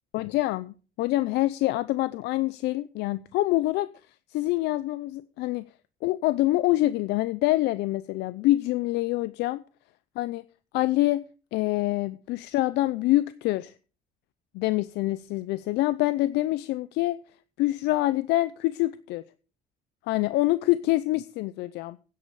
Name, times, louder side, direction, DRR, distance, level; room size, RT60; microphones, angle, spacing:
voice 1, 0.1-3.9 4.3-5.6 6.0-9.6 10.2-10.4 10.7-11.2 11.5-13.7 14.5-17.2 17.6-19.2 20.1-22.0, left 17 dB, 85° left, 15 dB, 0.6 m, -26 dB
9.7 x 8.5 x 6.9 m, 0.36 s
cardioid pair, 110°, 17 cm